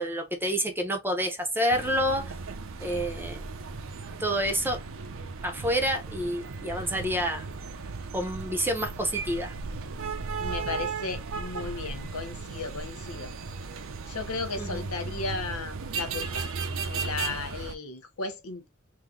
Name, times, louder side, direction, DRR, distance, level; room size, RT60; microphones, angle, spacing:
voice 1, 0.0-2.3 2.8-3.4 4.2-4.8 5.4-7.4 8.1-9.5 14.6-14.9, equal, 10° right, 0.9 m, -28 dB
sound 1, 1.7-17.8, right 4 dB, 65° right, 0.6 m, -36 dB
voice 2, 10.4-13.3 14.1-16.5 16.9-18.7, left 3 dB, 70° left, 0.9 m, -35 dB
3.7 x 2.8 x 3.7 m
head